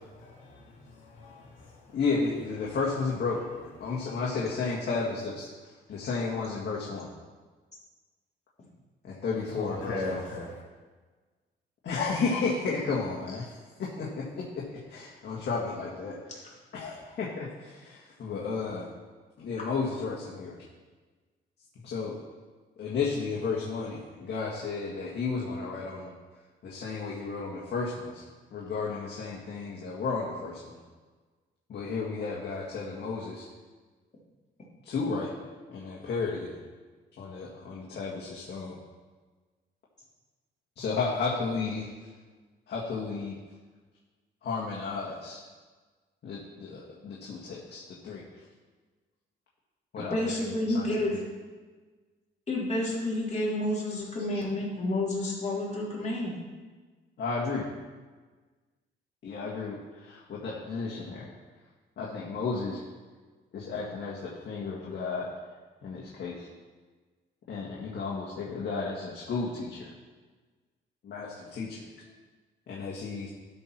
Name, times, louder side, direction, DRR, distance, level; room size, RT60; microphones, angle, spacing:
voice 1, 0.2-2.0 3.8-4.2 9.5-10.6, left 2 dB, 85° left, -3 dB, 2.4 m, -39 dB
voice 2, 1.9-3.4 3.8-7.1 9.0-10.2 11.8-18.9 19.4-20.6 21.8-22.1 22.8-26.1 26.6-28.3 28.5-30.8 31.7-33.4 34.8-35.3 35.7-36.6 37.2-38.8 40.8-41.9 42.7-43.3 44.4-45.4 46.2-48.4 49.9-50.3 50.7-51.2 54.3-54.4 57.2-57.7 59.2-61.3 62.0-62.8 63.5-65.3 65.8-66.5 67.5-69.9 71.0-71.9 72.7-73.3, left 4 dB, 60° left, -5 dB, 1.9 m, -33 dB
voice 3, 50.0-51.2 52.5-56.3, left 1 dB, 35° left, -5 dB, 3.5 m, -30 dB
12.5 x 4.6 x 6.0 m, 1.4 s
cardioid pair, 90°, 20 cm